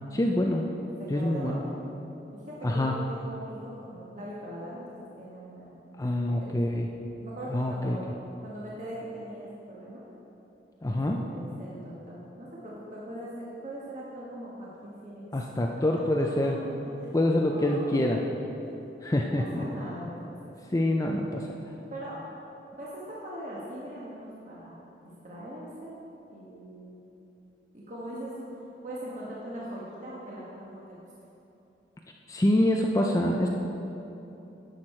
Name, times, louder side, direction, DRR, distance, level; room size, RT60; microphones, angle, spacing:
voice 1, 0.1-0.7 1.1-1.6 2.6-2.9 6.0-6.9 7.5-8.0 10.8-11.2 15.3-16.5 17.1-18.2 19.0-19.6 20.7-21.5 32.3-33.5, left 1 dB, 20° left, 1 dB, 0.4 m, -26 dB
voice 2, 0.9-1.6 2.3-5.8 6.4-6.6 7.2-8.1 8.4-10.0 10.8-15.3 15.6-15.7 16.2-16.5 17.0-18.3 19.1-20.3 21.9-22.2 22.8-24.8 25.2-26.0 26.3-27.1 27.7-28.5 28.8-31.0, right 1 dB, 45° right, -6 dB, 1.3 m, -41 dB
10.5 x 6.4 x 4.3 m, 3.0 s
head